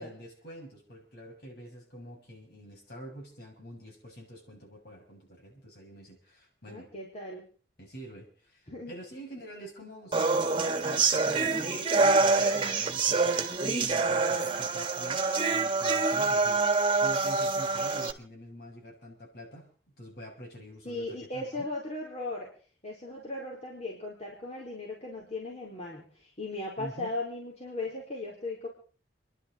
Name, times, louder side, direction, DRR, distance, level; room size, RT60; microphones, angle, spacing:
voice 1, 0.0-6.9 7.8-21.7 26.8-27.1, right 1 dB, 65° left, 0 dB, 7.5 m, -46 dB
voice 2, 6.7-7.5 8.7-9.0 20.8-22.5 22.8-28.7, left 2 dB, 40° left, -2 dB, 4.5 m, -37 dB
sound 1, 10.1-18.1, right 3 dB, 30° right, 1.8 m, -26 dB
29.5 x 11.5 x 4.1 m, 0.40 s
head